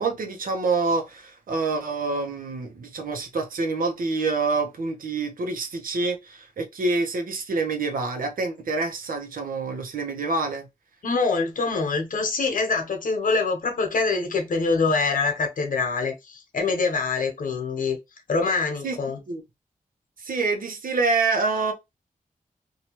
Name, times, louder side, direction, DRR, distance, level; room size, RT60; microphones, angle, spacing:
voice 1, 0.0-10.7 18.8-19.0 19.3-19.4 20.2-21.7, right 3 dB, 85° right, 0.8 m, -26 dB
voice 2, 11.0-18.0 18.3-19.2, left 4 dB, 80° left, 1.0 m, -25 dB
2.8 x 2.3 x 2.9 m
wide cardioid pair, 135°, 14 cm